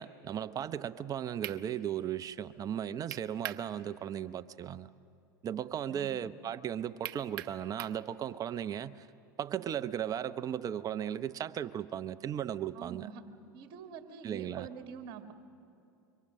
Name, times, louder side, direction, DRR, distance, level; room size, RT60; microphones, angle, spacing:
voice 1, 0.0-4.9 5.4-9.1 9.4-13.1 14.2-14.7, right 9 dB, 30° right, 12 dB, 0.8 m, -36 dB
sound 1, 1.0-1.1 1.4-1.6 3.1-3.7 4.0-4.1 7.0-8.0, right 13 dB, 65° right, 0.9 m, -40 dB
voice 2, 12.7-13.2 13.5-15.3, right 7 dB, 50° right, 6 dB, 2.1 m, -45 dB
25.5 x 23.5 x 6.5 m, 2.6 s
hypercardioid pair, 95°, 12 cm